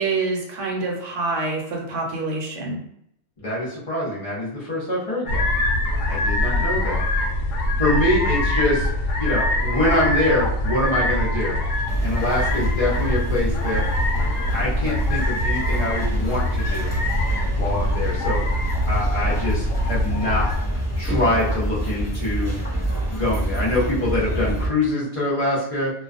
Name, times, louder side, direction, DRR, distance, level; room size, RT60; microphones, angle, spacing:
voice 1, 0.0-2.8, right 3 dB, 65° right, -1 dB, 0.9 m, -26 dB
voice 2, 3.4-5.5 6.1-7.0 7.8-8.9 9.2-11.6 12.0-13.8 14.5-16.9 17.5-18.5 18.8-20.5 21.0-22.6 23.1-25.9, left 1 dB, 45° left, -6 dB, 0.4 m, -24 dB
sound 1, 5.3-20.6, left 1 dB, 70° left, 0.9 m, -24 dB
sound 2, 11.9-24.7, right 1 dB, 20° left, 0.8 m, -27 dB
2.3 x 2.2 x 2.4 m, 0.75 s
omnidirectional pair, 1.4 m